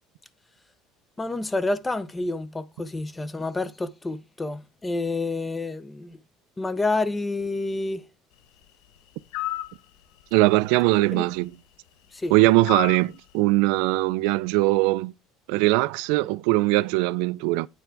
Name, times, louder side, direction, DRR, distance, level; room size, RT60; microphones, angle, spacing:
voice 1, 1.2-6.2 6.6-8.1 11.1-11.3 12.1-12.3, left 2 dB, 10° left, 0.5 m, -29 dB
sound 1, 9.3-9.7 12.7-13.1, left 16 dB, 70° left, 0.7 m, -30 dB
voice 2, 10.3-11.5 12.3-15.1 15.5-17.7, right 19 dB, 70° right, 0.3 m, -21 dB
8.9 x 3.4 x 4.5 m
cardioid pair, 175°, 0 cm